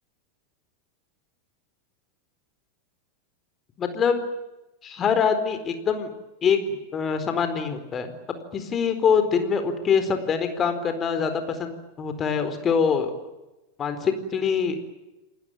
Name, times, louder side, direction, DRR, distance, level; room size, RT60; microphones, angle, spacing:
voice 1, 3.8-4.2 4.8-6.1 6.4-8.1 8.5-13.1 13.8-14.9, left 6 dB, 25° left, 9 dB, 4.3 m, -24 dB
28.5 x 20.5 x 9.2 m, 1.0 s
figure-of-eight pair, 90°, 0 cm